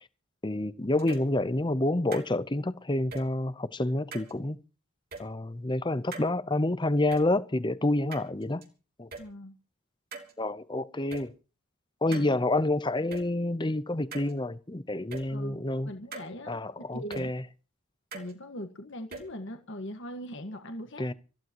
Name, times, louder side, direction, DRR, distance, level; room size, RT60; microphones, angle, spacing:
voice 1, 0.4-4.6 5.2-8.6 9.0-9.1 10.4-11.3 12.0-15.9 16.5-17.4 21.0-21.1, left 1 dB, 20° left, 0.7 m, -28 dB
sound 1, 1.0-1.3 2.1-2.3 3.1-3.2 4.1-4.3 5.1-5.2 6.1-6.3 7.1-7.2 8.1-8.7 9.1-9.2 10.1-10.3 11.1-11.2 12.1-12.3 13.1-13.2 14.1-14.3 15.1-15.2 16.1-16.3 17.1-17.2 18.1-18.3 19.1-19.2, right 4 dB, 45° right, 3.2 m, -41 dB
voice 2, 9.2-9.6 12.1-12.4 15.3-16.6 16.9-17.3 18.1-21.1, equal, 55° left, 1.7 m, -41 dB
25.5 x 14.5 x 3.0 m
head